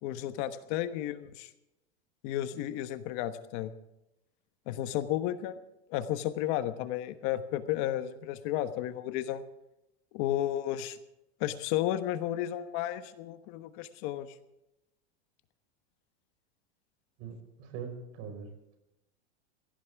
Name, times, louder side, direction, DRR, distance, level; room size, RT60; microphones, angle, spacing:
voice 1, 0.0-1.5 2.2-3.7 4.7-5.6 5.9-9.4 10.1-11.0 11.4-14.3, left 12 dB, 50° left, 11 dB, 1.2 m, -33 dB
voice 2, 17.2-18.5, right 6 dB, 50° right, 6 dB, 5.2 m, -42 dB
21.0 x 16.5 x 3.6 m, 0.91 s
supercardioid pair, 150°, 32 cm